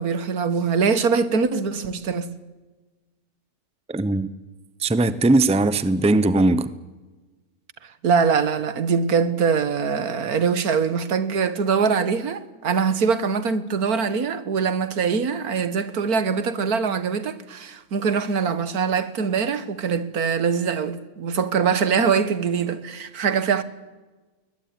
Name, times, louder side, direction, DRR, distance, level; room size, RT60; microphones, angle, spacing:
voice 1, 0.0-2.3 8.0-23.6, right 6 dB, 80° right, 1.9 m, -23 dB
voice 2, 3.9-4.3 4.8-6.7, right 2 dB, 5° right, 0.6 m, -19 dB
21.0 x 20.5 x 9.6 m
omnidirectional pair, 1.5 m